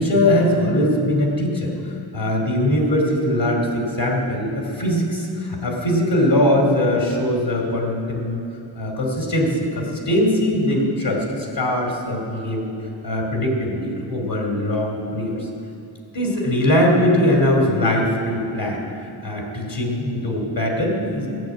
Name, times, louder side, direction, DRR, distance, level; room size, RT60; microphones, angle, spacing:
voice 1, 0.0-8.4 8.8-12.6 13.0-15.5 16.1-18.8 19.2-21.3, left 1 dB, 65° left, -1 dB, 2.6 m, -21 dB
15.5 x 6.7 x 9.1 m, 2.8 s
cardioid pair, 50°, 46 cm